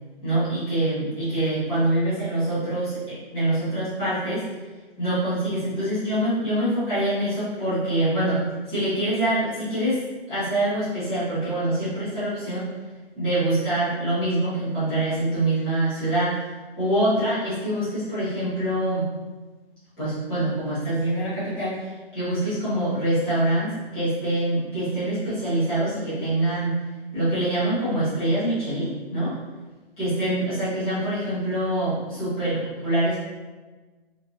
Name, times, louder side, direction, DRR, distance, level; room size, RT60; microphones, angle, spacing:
voice 1, 0.2-4.4 5.0-12.7 13.2-19.1 20.0-26.8 27.1-29.4 30.0-33.2, right 1 dB, 5° left, -15 dB, 0.3 m, -25 dB
2.9 x 2.3 x 2.4 m, 1.3 s
hypercardioid pair, 140°, 31 cm